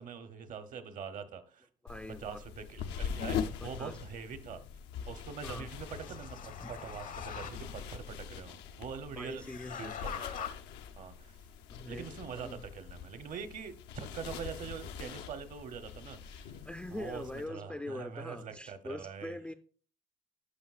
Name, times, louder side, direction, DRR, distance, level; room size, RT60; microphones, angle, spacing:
voice 1, 0.0-1.7 2.1-4.6 5.1-10.5 11.0-11.4 11.9-16.6 16.9-19.4, right 6 dB, 50° right, 0.9 m, -44 dB
voice 2, 1.8-2.4 3.5-4.0 5.4-5.7 6.6-6.7 9.2-9.9 11.7-12.1 12.4-12.6 16.7-19.5, left 1 dB, 5° left, 0.4 m, -43 dB
sound 1, 1.9-17.5, left 7 dB, 85° left, 0.6 m, -43 dB
sound 2, 5.3-8.0 9.3-10.5, left 8 dB, 55° left, 0.7 m, -43 dB
11.5 x 5.4 x 2.4 m
cardioid pair, 110°, 17 cm